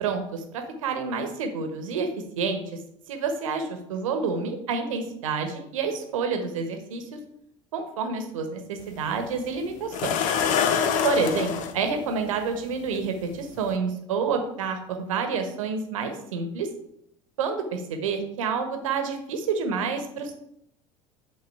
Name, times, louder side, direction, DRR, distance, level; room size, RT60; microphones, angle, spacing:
voice 1, 0.0-2.1 2.4-2.6 3.1-7.0 7.7-10.1 11.0-16.7 17.4-20.3, right 5 dB, 70° right, 5 dB, 1.1 m, -28 dB
sound 1, 8.8-8.9 9.9-11.7 13.0-13.1 13.6-13.7, left 7 dB, 45° left, 0.6 m, -24 dB
8.8 x 3.7 x 4.8 m, 0.76 s
figure-of-eight pair, 65°, 18 cm